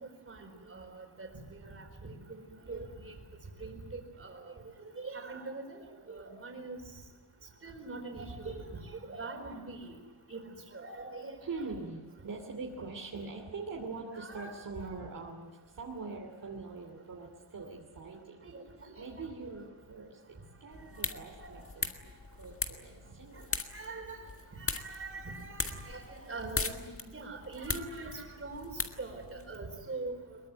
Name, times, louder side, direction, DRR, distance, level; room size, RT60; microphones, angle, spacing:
voice 1, 0.3-2.4 2.7-3.1 3.6-4.5 5.0-6.8 7.6-10.0 10.3-11.7 14.2-14.5 18.4-18.6 18.9-19.3 21.1-21.6 23.7-24.2 24.6-26.8 27.1-28.7 29.0-30.4, right 3 dB, 30° right, 4 dB, 4.4 m, -43 dB
voice 2, 11.4-18.5 19.0-23.5, right 3 dB, 50° right, 0 dB, 2.9 m, -43 dB
sound 1, 20.7-29.6, left 4 dB, 30° left, 1.7 m, -40 dB
23.5 x 22.0 x 9.1 m, 1.4 s
wide cardioid pair, 175°, 41 cm